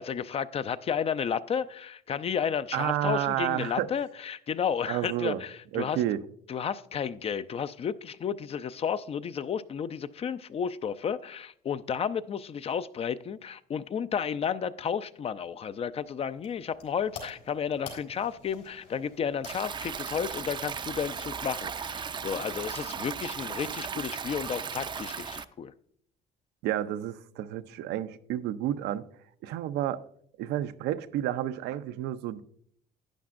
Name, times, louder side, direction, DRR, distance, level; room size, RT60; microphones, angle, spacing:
voice 1, 0.0-6.0 6.5-25.7, left 7 dB, 35° left, 0.4 m, -32 dB
voice 2, 2.7-3.9 4.9-5.4 5.7-6.2 26.6-29.0 29.4-30.0 30.4-32.4, right 12 dB, 85° right, 0.5 m, -30 dB
sound 1, 15.9-21.3, left 5 dB, 70° left, 3.7 m, -49 dB
Stream, 19.4-25.4, right 6 dB, 30° right, 0.4 m, -36 dB
11.5 x 9.5 x 2.5 m
cardioid pair, 110°, 17 cm